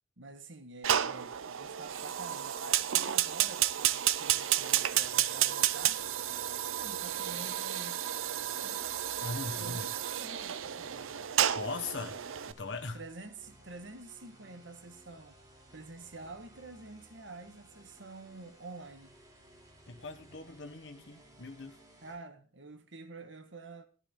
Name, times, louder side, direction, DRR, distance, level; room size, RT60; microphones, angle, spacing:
voice 1, 0.2-6.0 6.7-8.8 9.6-11.3 12.9-15.4 15.7-19.1 22.0-23.9, right 3 dB, 65° right, 1.5 m, -48 dB
Fire, 0.8-12.5, right 11 dB, 80° right, 0.6 m, -31 dB
sound 1, 4.8-22.1, right 1 dB, 20° right, 2.9 m, -59 dB
voice 2, 9.2-9.8 11.5-12.2 12.5-13.0 19.9-21.8, left 3 dB, 60° left, 1.2 m, -40 dB
13.5 x 11.0 x 3.7 m
head